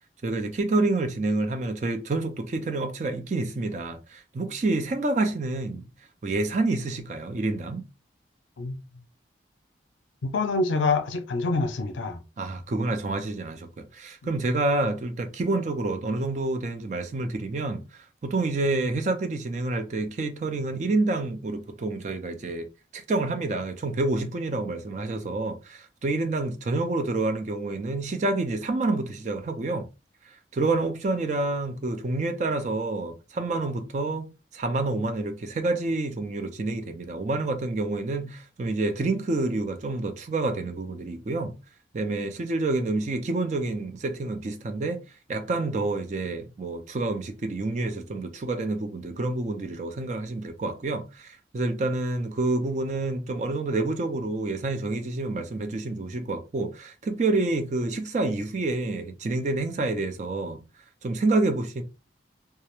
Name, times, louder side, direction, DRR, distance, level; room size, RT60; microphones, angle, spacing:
voice 1, 0.2-5.9 6.2-7.8 12.4-22.7 22.9-29.9 30.3-41.5 41.9-45.0 45.3-60.6 61.0-61.8, right 2 dB, 40° right, 0.4 m, -28 dB
voice 2, 10.3-12.2, left 3 dB, 85° left, 0.4 m, -26 dB
2.3 x 2.0 x 2.9 m
head